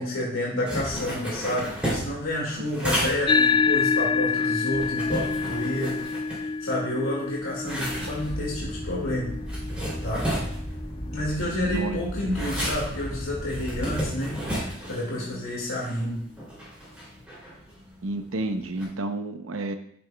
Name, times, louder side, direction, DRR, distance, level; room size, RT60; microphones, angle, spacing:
voice 1, 0.0-6.0 6.3-9.3 10.0-10.3 11.1-16.2, left 1 dB, 85° left, -4 dB, 2.1 m, -30 dB
sound 1, 0.6-6.9 7.2-18.8, equal, 5° right, 3.0 m, -34 dB
sound 2, 3.3-12.0, left 5 dB, 25° left, 0.3 m, -28 dB
sound 3, 7.7-14.0, equal, 40° left, 2.3 m, -36 dB
voice 2, 11.6-12.0 18.0-19.7, right 2 dB, 75° right, 8 dB, 0.8 m, -31 dB
10.5 x 6.9 x 2.3 m, 0.67 s
head